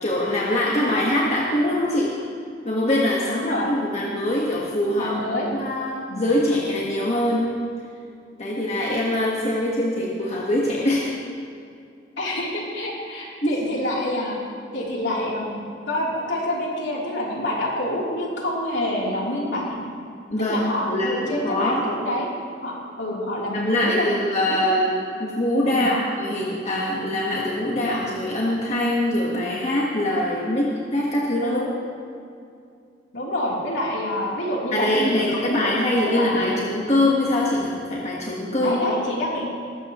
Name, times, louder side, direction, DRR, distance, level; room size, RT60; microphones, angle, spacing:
voice 1, 0.0-2.1 2.6-7.6 8.4-11.1 13.4-13.5 20.3-21.8 23.5-31.7 34.7-38.9, left 1 dB, 35° left, -4 dB, 1.5 m, -23 dB
voice 2, 3.3-3.7 5.0-5.5 6.1-6.3 12.2-14.4 14.7-19.8 20.4-22.3 22.6-24.1 24.5-24.6 25.7-25.9 31.4-31.7 33.1-36.6 38.6-39.5, left 1 dB, 70° left, -4 dB, 3.4 m, -27 dB
19.5 x 14.5 x 3.1 m, 2.4 s
head